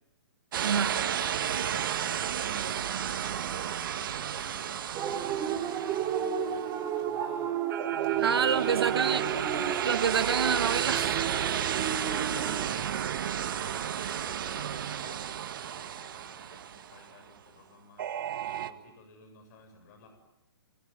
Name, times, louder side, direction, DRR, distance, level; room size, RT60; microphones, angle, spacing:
sound 1, 0.5-6.9 7.7-17.1 18.0-18.7, right 9 dB, 55° right, 1.9 m, -32 dB
voice 1, 0.6-1.0 8.2-9.2 9.8-11.2, right 6 dB, 80° right, 11 dB, 1.7 m, -27 dB
voice 2, 1.4-3.3 3.7-7.6 8.0-9.1 11.6-18.1 18.5-20.2, left 4 dB, 45° left, 5 dB, 7.7 m, -54 dB
sound 2, 4.9-12.7, right 9 dB, 25° right, 3.4 m, -32 dB
30.0 x 22.5 x 9.0 m, 0.93 s
hypercardioid pair, 140°, 13 cm